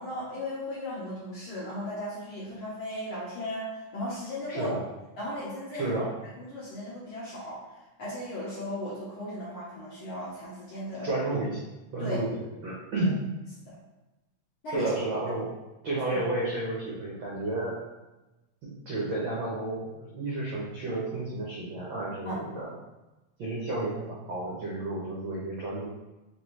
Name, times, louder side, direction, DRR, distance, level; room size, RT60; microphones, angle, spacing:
voice 1, 0.0-4.8 5.2-5.9 6.4-11.1 12.0-12.2 13.6-13.7 14.6-14.9 16.1-16.2 22.2-22.4, left 1 dB, 65° left, -8 dB, 1.4 m, -36 dB
voice 2, 5.8-6.1 11.0-11.7 11.9-12.3 12.6-13.1 14.7-15.5 15.8-17.8 18.9-22.7 23.4-25.9, right 2 dB, 80° right, -6 dB, 1.1 m, -31 dB
5.1 x 2.7 x 3.0 m, 1.0 s
omnidirectional pair, 3.4 m